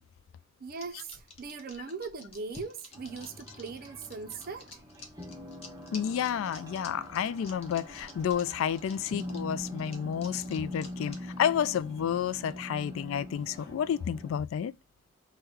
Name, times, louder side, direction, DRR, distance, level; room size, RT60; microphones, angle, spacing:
voice 1, 0.6-4.8, right 4 dB, 50° right, 0.5 m, -40 dB
sound 1, 0.7-11.4, left 3 dB, 30° left, 0.7 m, -50 dB
sound 2, 2.9-14.4, left 1 dB, 15° right, 1.0 m, -43 dB
voice 2, 5.9-14.7, left 8 dB, 75° left, 0.3 m, -30 dB
3.7 x 2.2 x 4.2 m
head